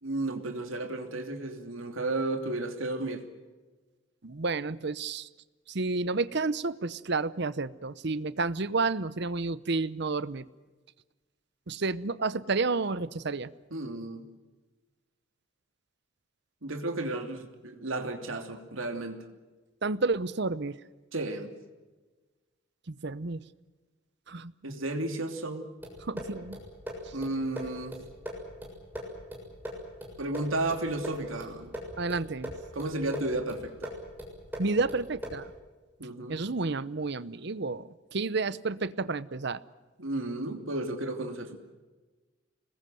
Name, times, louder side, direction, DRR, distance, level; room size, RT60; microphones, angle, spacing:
voice 1, 0.0-3.2 13.7-14.3 16.6-19.2 21.1-21.5 24.6-25.7 27.1-28.0 30.2-31.8 32.7-33.9 36.0-36.4 40.0-41.6, right 2 dB, 85° right, 5 dB, 3.0 m, -33 dB
voice 2, 4.2-5.3 5.7-10.4 11.7-13.5 19.8-20.8 22.9-23.4 24.3-24.5 26.0-26.6 32.0-32.5 34.6-35.5 36.3-39.6, right 3 dB, 55° right, 17 dB, 0.8 m, -30 dB
sound 1, 25.8-35.6, equal, 10° right, 6.9 m, -41 dB
26.5 x 21.0 x 7.7 m, 1.3 s
head